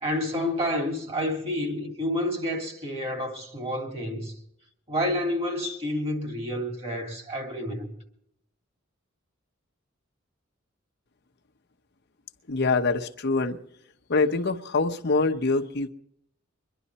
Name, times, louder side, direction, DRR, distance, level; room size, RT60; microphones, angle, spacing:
voice 1, 0.0-4.3 4.9-7.9, left 1 dB, 30° right, 3.0 m, -29 dB
voice 2, 12.5-13.6 14.1-15.9, left 3 dB, 55° left, 0.9 m, -24 dB
24.0 x 11.5 x 4.2 m
head